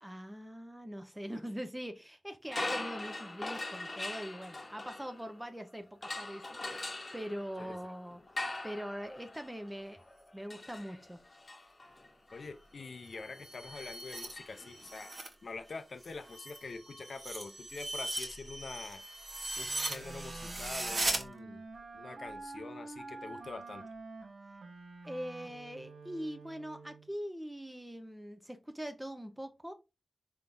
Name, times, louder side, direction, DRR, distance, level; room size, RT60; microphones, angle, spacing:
voice 1, 0.0-10.0 10.3-11.2 25.1-29.7, equal, 10° right, 0.6 m, -42 dB
sound 1, 2.4-5.5 6.0-15.0, left 2 dB, 35° left, 0.9 m, -42 dB
voice 2, 12.3-15.1 15.4-19.0 19.6-21.7 21.9-23.8, left 4 dB, 65° left, 0.5 m, -45 dB
sound 2, 12.9-15.3 15.7-21.2, right 2 dB, 50° right, 1.0 m, -39 dB
Wind instrument woodwind instrument, 19.6-27.1, right 3 dB, 70° right, 0.9 m, -48 dB
4.5 x 3.6 x 2.6 m
cardioid pair, 70°, 0 cm